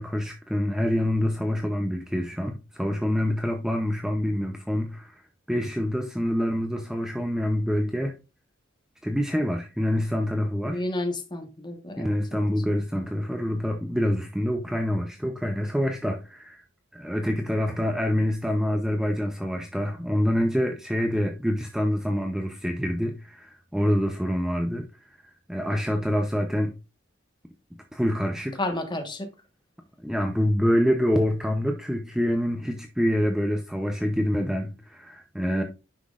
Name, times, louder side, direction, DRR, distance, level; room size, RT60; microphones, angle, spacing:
voice 1, 0.0-5.2 5.5-8.1 9.0-10.8 12.0-16.6 16.9-24.9 25.1-26.7 27.9-28.6 30.0-35.6, equal, 5° right, 0.6 m, -26 dB
voice 2, 10.6-12.5 28.6-29.3, left 1 dB, 25° left, 1.3 m, -31 dB
9.6 x 6.0 x 2.5 m
head